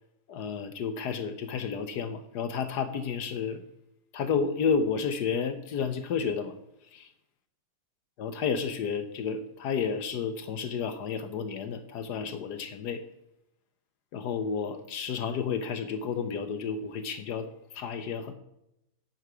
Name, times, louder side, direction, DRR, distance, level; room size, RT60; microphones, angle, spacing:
voice 1, 0.3-3.6 4.1-6.5 6.9-7.0 8.2-13.0 14.1-18.3, left 6 dB, 65° left, 9 dB, 1.2 m, -31 dB
9.6 x 5.9 x 6.0 m, 0.83 s
omnidirectional pair, 2.1 m